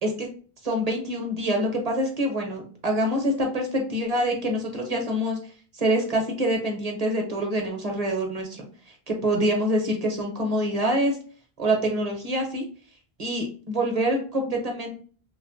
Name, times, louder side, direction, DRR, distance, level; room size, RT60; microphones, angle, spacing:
voice 1, 0.6-5.4 5.7-8.7 9.1-11.2 11.6-12.6 13.2-14.9, equal, 45° right, 1 dB, 0.7 m, -25 dB
3.2 x 2.3 x 2.4 m, 0.40 s
omnidirectional pair, 1.0 m